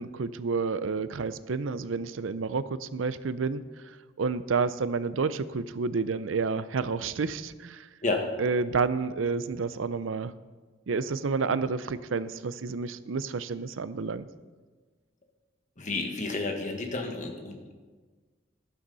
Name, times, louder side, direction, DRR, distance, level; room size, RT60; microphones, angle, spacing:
voice 1, 0.0-7.9 8.4-10.3 10.9-14.3, right 4 dB, 80° right, 14 dB, 0.5 m, -30 dB
voice 2, 15.8-17.7, left 3 dB, 40° left, 3 dB, 1.6 m, -31 dB
14.0 x 11.5 x 4.1 m, 1.4 s
head